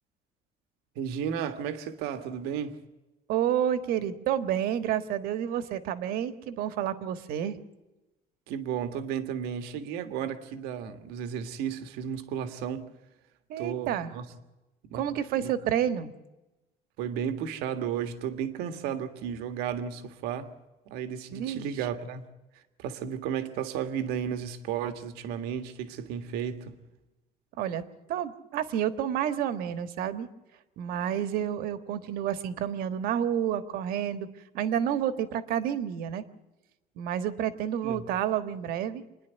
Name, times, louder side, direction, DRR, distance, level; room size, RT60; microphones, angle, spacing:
voice 1, 0.9-2.8 8.5-12.9 13.6-14.2 14.9-15.0 15.3-15.5 17.0-20.5 20.9-22.3 22.8-26.8 37.8-38.0, right 8 dB, 85° right, 1.7 m, -33 dB
voice 2, 3.3-7.6 13.5-14.1 14.9-16.1 21.3-21.7 27.6-27.8 28.1-30.3 30.8-34.3 34.5-36.2 37.0-39.0, right 10 dB, 70° right, 1.5 m, -29 dB
27.5 x 10.5 x 9.2 m
cardioid pair, 145°, 16 cm